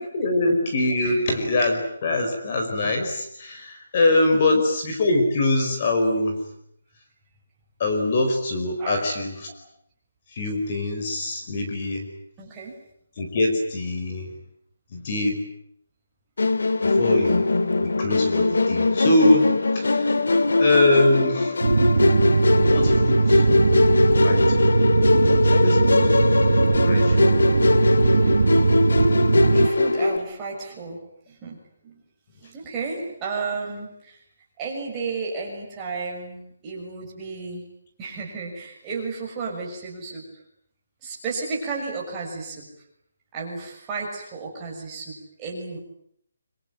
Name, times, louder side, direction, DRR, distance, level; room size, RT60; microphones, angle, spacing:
voice 1, 0.0-6.4 7.8-9.5 10.3-12.1 13.2-14.3 14.9-15.4 16.8-17.5 17.8-20.1 20.6-21.5 22.7-23.4 23.8-24.8 25.3-26.2 26.9-27.3, left 2 dB, 30° left, 4 dB, 4.7 m, -23 dB
voice 2, 4.3-4.6 8.8-9.1 12.4-12.7 20.3-20.5 29.5-31.0 31.3-31.6 31.8-32.0 32.4-34.2 34.6-37.6 38.0-40.2 41.0-42.7 43.3-45.8, right 4 dB, 15° right, -3 dB, 6.4 m, -33 dB
Musical instrument, 16.4-30.2, left 3 dB, 85° left, 2.1 m, -21 dB
sound 1, 21.6-29.7, right 4 dB, 75° right, 1.4 m, -20 dB
25.5 x 25.5 x 9.1 m, 0.71 s
hypercardioid pair, 175°, 0 cm